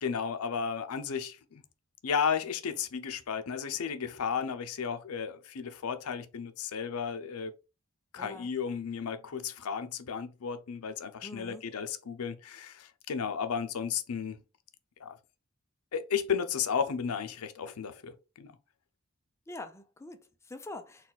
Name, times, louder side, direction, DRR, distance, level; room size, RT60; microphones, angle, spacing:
voice 1, 0.0-1.6 2.0-7.5 8.1-14.4 15.0-15.2 15.9-18.5, left 6 dB, 80° left, 0.5 m, -33 dB
voice 2, 8.2-8.5 11.2-11.6 19.5-21.1, left 2 dB, 10° left, 0.4 m, -45 dB
4.0 x 2.3 x 3.9 m
head